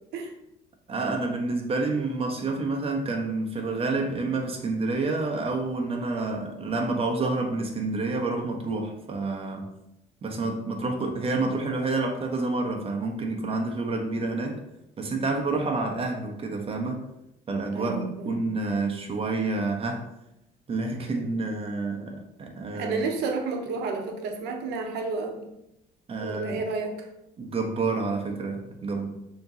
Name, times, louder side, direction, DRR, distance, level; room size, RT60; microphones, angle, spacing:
voice 1, 0.9-9.7 10.2-14.6 15.0-17.1 17.5-20.1 20.7-23.0 26.1-26.6 27.4-29.1, right 3 dB, 35° right, 3 dB, 0.9 m, -28 dB
voice 2, 17.7-18.4 22.7-25.4 26.2-27.1, right 4 dB, 80° right, 4 dB, 0.9 m, -31 dB
6.4 x 3.0 x 2.8 m, 0.85 s
cardioid pair, 110°, 17 cm